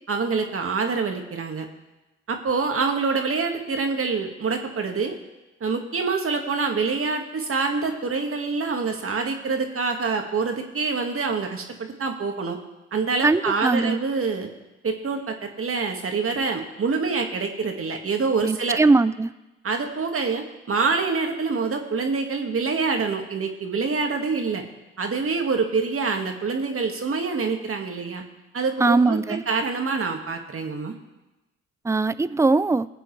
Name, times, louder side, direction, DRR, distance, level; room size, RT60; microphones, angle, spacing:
voice 1, 0.1-1.7 2.3-5.1 5.6-12.6 12.9-14.5 14.8-18.8 19.6-24.6 25.0-28.2 28.5-31.0, right 4 dB, 45° right, 4 dB, 2.0 m, -26 dB
voice 2, 13.2-14.0 18.4-19.3 28.8-29.4 31.8-32.9, right 3 dB, 10° right, 16 dB, 0.5 m, -20 dB
21.0 x 7.6 x 3.3 m, 1.0 s
hypercardioid pair, 50°, 30 cm